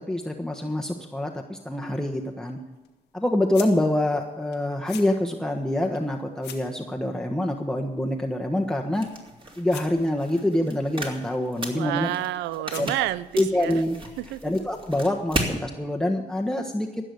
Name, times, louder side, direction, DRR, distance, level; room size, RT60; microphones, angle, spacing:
voice 1, 0.0-2.6 3.1-9.0 9.6-12.1 12.8-12.9 13.4-14.0 14.4-16.9, left 1 dB, 5° left, 4 dB, 1.3 m, -26 dB
sound 1, 1.8-13.3, left 10 dB, 85° left, 1.5 m, -48 dB
sound 2, 8.9-15.6, right 1 dB, 30° right, 3.2 m, -35 dB
voice 2, 11.7-13.8 14.2-14.4, right 14 dB, 85° right, 18 dB, 0.5 m, -29 dB
15.5 x 6.3 x 8.3 m, 1.1 s
supercardioid pair, 50°, 18 cm